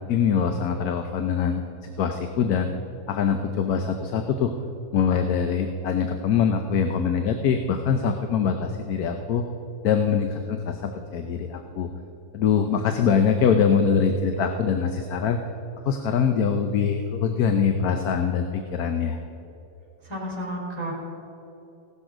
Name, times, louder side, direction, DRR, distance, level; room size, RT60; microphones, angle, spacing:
voice 1, 0.1-2.7 3.1-4.5 4.9-9.4 9.8-11.9 12.3-15.4 15.9-19.2, left 6 dB, 70° left, 6 dB, 1.3 m, -23 dB
voice 2, 20.0-20.9, equal, 15° right, -5 dB, 4.1 m, -31 dB
17.0 x 12.0 x 5.0 m, 3.0 s
omnidirectional pair, 1.7 m